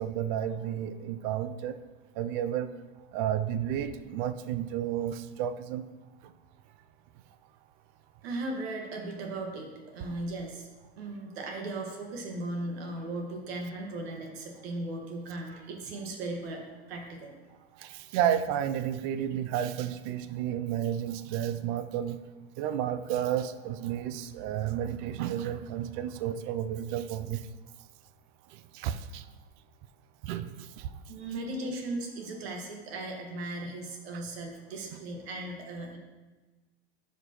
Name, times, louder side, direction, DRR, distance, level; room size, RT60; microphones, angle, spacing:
voice 1, 0.0-1.8 2.2-2.7 3.1-5.8 17.8-22.2 22.6-27.4 28.5-29.3 30.2-30.9, right 10 dB, 50° right, 12 dB, 0.5 m, -32 dB
voice 2, 8.2-10.7 11.0-16.6 16.9-17.3 31.1-36.0, right 2 dB, 70° right, 2 dB, 1.7 m, -37 dB
10.5 x 5.0 x 3.1 m, 1.2 s
hypercardioid pair, 115°, 32 cm